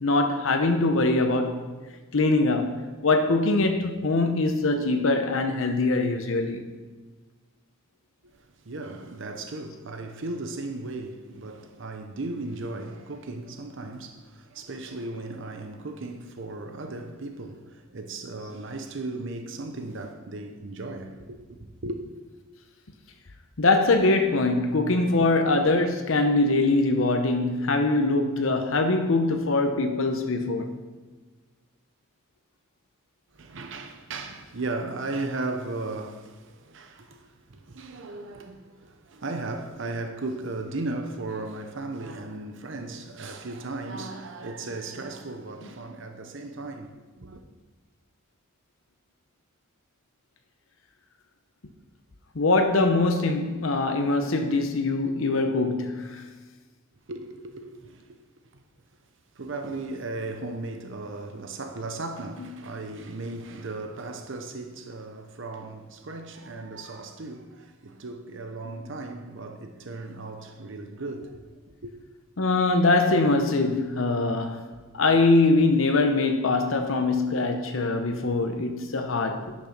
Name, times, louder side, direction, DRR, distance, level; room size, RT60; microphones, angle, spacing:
voice 1, 0.0-1.7 2.1-6.6 23.6-30.7 45.6-45.7 52.3-56.2 62.4-62.6 72.4-79.5, left 2 dB, 70° left, 0.8 m, -23 dB
voice 2, 8.2-22.0 33.3-47.4 57.1-58.2 59.4-71.4 71.8-71.9, right 2 dB, 65° right, 0.8 m, -36 dB
10.0 x 6.3 x 5.9 m
head